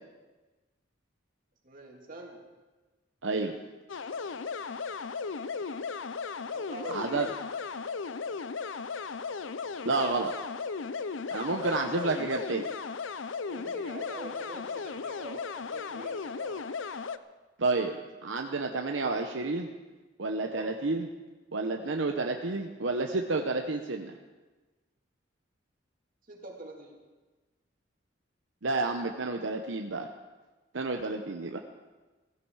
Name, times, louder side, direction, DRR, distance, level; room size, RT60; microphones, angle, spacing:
voice 1, 1.6-2.4 6.5-7.3 11.6-11.8 13.4-16.7 20.3-20.8 26.3-27.0, right 1 dB, 45° right, -1 dB, 2.9 m, -44 dB
voice 2, 3.2-3.5 6.9-7.3 9.8-10.3 11.3-12.7 17.6-17.9 18.2-19.7 20.2-21.1 21.5-24.1 28.6-30.1 30.7-31.6, right 3 dB, 80° right, 4 dB, 0.9 m, -30 dB
sound 1, 3.9-17.2, left 5 dB, 85° left, 0.6 m, -36 dB
16.0 x 15.5 x 4.8 m, 1.2 s
head